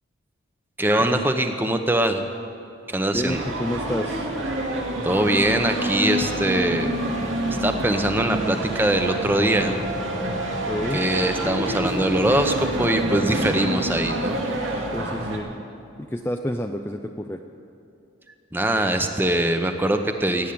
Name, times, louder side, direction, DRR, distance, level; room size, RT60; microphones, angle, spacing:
voice 1, 0.8-2.2 2.9-3.4 5.0-6.9 7.6-9.8 10.9-14.4 18.5-20.5, right 1 dB, 10° right, 6 dB, 0.9 m, -22 dB
voice 2, 3.1-4.3 10.7-11.0 14.9-15.5 16.0-17.4, left 1 dB, 10° left, 4 dB, 0.4 m, -29 dB
sound 1, 3.2-15.4, right 1 dB, 90° right, 2.3 m, -27 dB
17.0 x 9.2 x 8.6 m, 2.7 s
head